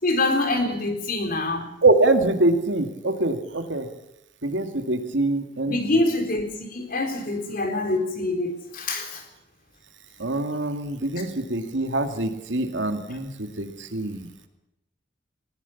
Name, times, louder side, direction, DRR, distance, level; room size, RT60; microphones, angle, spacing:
voice 1, 0.0-1.7 5.7-9.2, left 2 dB, 50° left, 5 dB, 3.9 m, -25 dB
voice 2, 1.8-3.9 4.4-6.0 10.2-14.3, right 2 dB, 80° right, 7 dB, 2.3 m, -24 dB
20.0 x 19.0 x 7.2 m, 0.87 s
head